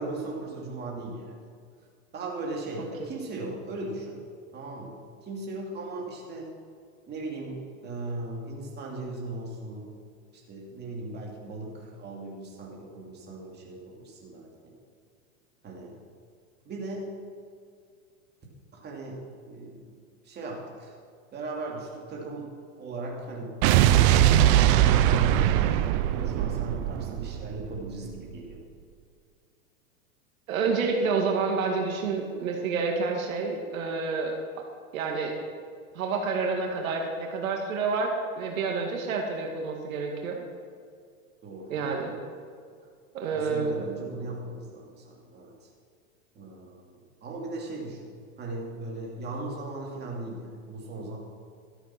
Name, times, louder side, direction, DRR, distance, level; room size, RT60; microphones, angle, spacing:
voice 1, 0.0-1.4 2.1-4.2 4.5-6.5 7.1-9.9 10.5-14.7 15.6-15.9 16.6-17.1 18.7-19.2 19.4-20.0 20.2-20.9 21.3-22.5 22.8-23.5 23.8-25.8 26.1-28.6 41.4-41.9 43.3-45.5 46.3-51.2, right 2 dB, 25° right, -2 dB, 2.8 m, -38 dB
Explosion, 23.6-28.0, right 12 dB, 40° right, 0.7 m, -21 dB
voice 2, 30.5-34.3 34.9-35.3 35.9-38.1 38.4-40.4 41.7-42.1 43.1-43.9, right 4 dB, 75° right, 1 dB, 2.1 m, -28 dB
13.0 x 8.1 x 6.0 m, 2.2 s
hypercardioid pair, 130°, 41 cm